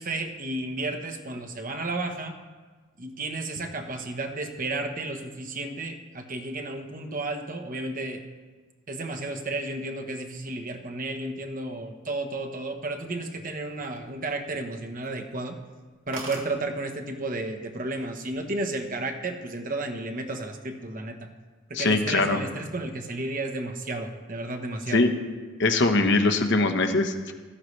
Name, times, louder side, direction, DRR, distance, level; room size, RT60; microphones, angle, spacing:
voice 1, 0.0-2.3 3.0-8.2 8.9-15.6 16.1-21.3 21.7-25.1, right 2 dB, 40° right, 5 dB, 1.1 m, -32 dB
sound 1, 13.6-14.6 15.0-15.2 15.6-15.7 15.9-16.0 16.1-16.5 17.4-17.7 18.1-18.5, right 3 dB, 65° right, 2.4 m, -41 dB
voice 2, 21.7-22.4 24.9-25.1 25.6-27.3, left 3 dB, 60° left, 6 dB, 1.0 m, -22 dB
15.5 x 13.5 x 3.3 m, 1.4 s
head